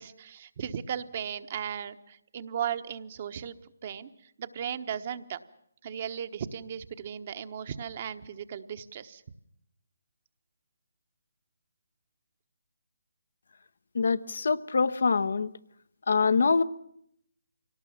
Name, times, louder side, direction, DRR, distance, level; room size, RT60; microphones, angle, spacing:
voice 1, 0.0-3.5 3.8-4.1 4.4-5.4 5.8-9.2, right 8 dB, 40° right, 11 dB, 1.1 m, -36 dB
voice 2, 13.9-15.5 16.1-16.6, left 4 dB, 65° left, 14 dB, 0.9 m, -24 dB
24.5 x 18.0 x 7.2 m, 0.72 s
figure-of-eight pair, 155°, 0 cm